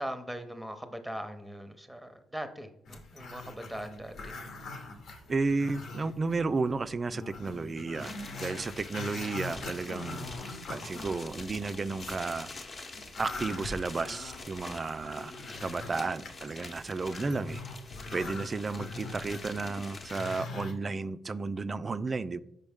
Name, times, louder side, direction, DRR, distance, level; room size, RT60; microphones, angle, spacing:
voice 1, 0.0-4.4, equal, ahead, 8 dB, 0.7 m, -40 dB
Growling, 2.8-6.4 6.7-6.8 7.1-12.2 12.7-20.7, left 2 dB, 70° left, 1.0 m, -42 dB
voice 2, 5.3-8.1 8.4-10.3 10.7-12.5 13.2-15.3 15.6-17.6 18.1-22.4, right 3 dB, 30° right, 15 dB, 0.3 m, -33 dB
sound 1, 7.9-20.6, left 3 dB, 40° left, 0.9 m, -46 dB
5.4 x 5.3 x 3.5 m, 0.78 s
cardioid pair, 90°, 0 cm